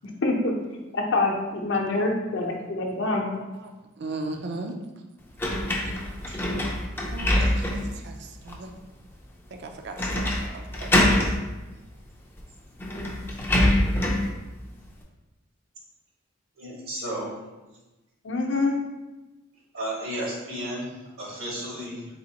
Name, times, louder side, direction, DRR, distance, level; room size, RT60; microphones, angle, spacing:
voice 1, 0.2-0.5 0.9-3.3 18.2-18.7, left 2 dB, 60° left, 1 dB, 0.7 m, -25 dB
voice 2, 4.0-4.7 7.1-8.7 9.5-10.9, right 2 dB, 55° right, 4 dB, 0.4 m, -37 dB
sound 1, 5.4-8.0 8.5-8.6 10.0-10.5 10.7-11.4 12.4-12.5 12.8-14.3, left 1 dB, 10° left, 0.4 m, -24 dB
voice 3, 16.6-17.3 19.7-22.1, right 1 dB, 80° right, -4 dB, 1.4 m, -33 dB
4.1 x 3.4 x 2.8 m, 1.1 s
head